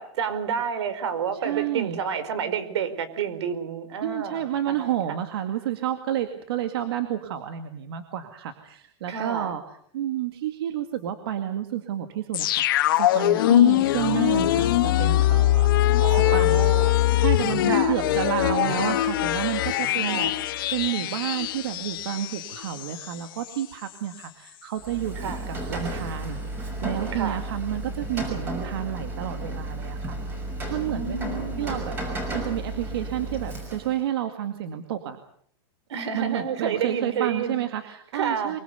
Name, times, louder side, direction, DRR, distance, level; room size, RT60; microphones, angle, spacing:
voice 1, 0.0-4.9 9.1-9.5 13.4-13.9 16.0-17.0 17.7-18.0 19.9-20.4 25.2-25.4 27.1-27.4 30.9-31.7 35.9-37.6 38.1-38.5, right 6 dB, 75° right, 14 dB, 4.6 m, -30 dB
voice 2, 1.3-2.0 4.0-9.6 9.9-15.7 16.1-16.7 17.2-20.3 20.7-30.4 30.7-31.2 31.6-32.0 32.3-35.2 36.1-38.6, right 11 dB, 60° right, 7 dB, 2.1 m, -30 dB
sound 1, 12.3-23.2 23.5-23.6, left 14 dB, 50° left, 1.3 m, -22 dB
Rain, 24.8-34.0, right 1 dB, 15° right, 6.0 m, -33 dB
24.0 x 23.5 x 6.9 m, 0.64 s
supercardioid pair, 180°, 14 cm